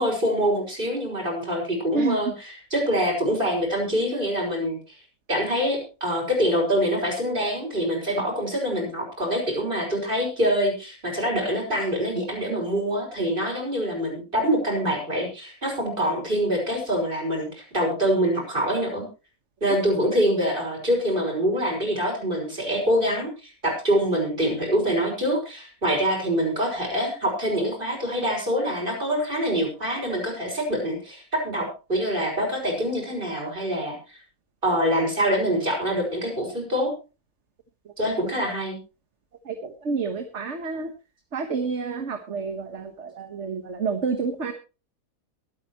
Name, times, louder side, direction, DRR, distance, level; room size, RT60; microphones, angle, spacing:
voice 1, 0.0-4.8 5.3-19.1 19.6-34.0 34.6-36.9 38.0-38.8, equal, 35° right, 0 dB, 6.1 m, -25 dB
voice 2, 39.5-40.9 41.3-44.5, right 4 dB, 50° right, 6 dB, 1.6 m, -29 dB
23.0 x 9.1 x 3.0 m, 0.32 s
omnidirectional pair, 1.6 m